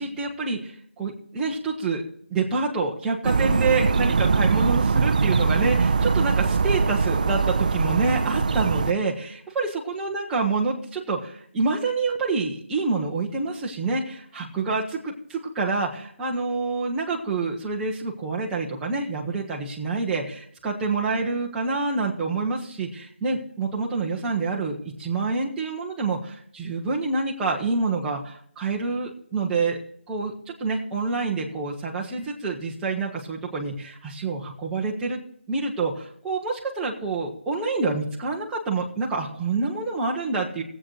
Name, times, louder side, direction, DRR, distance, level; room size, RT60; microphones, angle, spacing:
voice 1, 0.0-2.0 2.3-29.8 30.1-30.3 30.6-35.2 35.5-40.6, right 3 dB, 5° right, -3 dB, 0.9 m, -27 dB
sound 1, 3.2-8.9, right 4 dB, 40° right, 0.4 m, -22 dB
18.5 x 7.8 x 3.2 m, 0.66 s
figure-of-eight pair, 170°, 6 cm